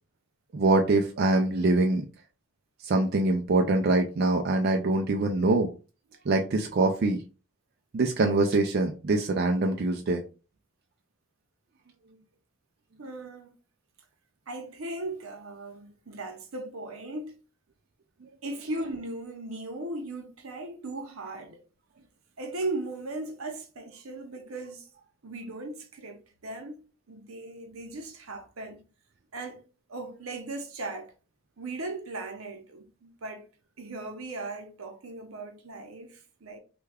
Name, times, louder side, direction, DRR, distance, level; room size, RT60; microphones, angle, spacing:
voice 1, 0.5-2.1 2.8-5.7 6.3-7.2 7.9-10.2, right 2 dB, 45° right, 0.3 m, -24 dB
voice 2, 13.0-13.5 14.5-17.3 18.4-21.6 22.4-24.9 25.2-26.8 27.1-28.8 29.3-29.6 29.9-31.1 31.6-33.5 33.8-36.6, right 2 dB, 80° right, 0.8 m, -37 dB
3.3 x 2.3 x 3.3 m
head